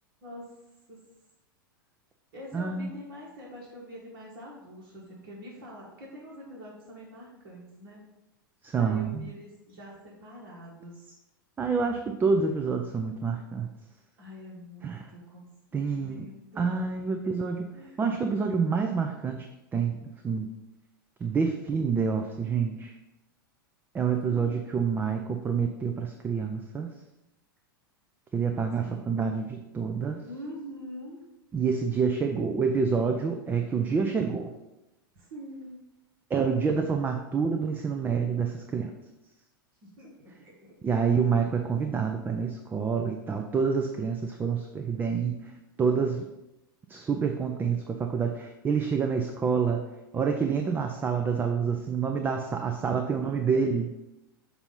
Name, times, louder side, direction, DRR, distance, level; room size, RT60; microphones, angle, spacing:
voice 1, 0.2-0.5 0.9-1.0 2.3-8.0 8.8-11.1 14.2-15.5 15.7-16.7 17.7-18.0 24.1-24.7 28.7-29.0 30.2-31.2 35.1-35.8 39.8-40.8, equal, 50° right, -5 dB, 1.7 m, -45 dB
voice 2, 2.5-2.9 8.6-9.3 11.6-13.7 14.8-15.0 15.7-16.2 16.6-17.7 18.0-19.5 19.7-20.0 20.2-20.5 21.2-22.9 23.9-26.9 28.3-30.2 31.5-34.5 36.3-38.9 40.8-45.5 45.8-46.3 46.9-49.8 50.1-53.9, right 5 dB, 15° right, 5 dB, 0.5 m, -27 dB
6.8 x 2.7 x 5.6 m, 0.96 s
figure-of-eight pair, 95°, 12 cm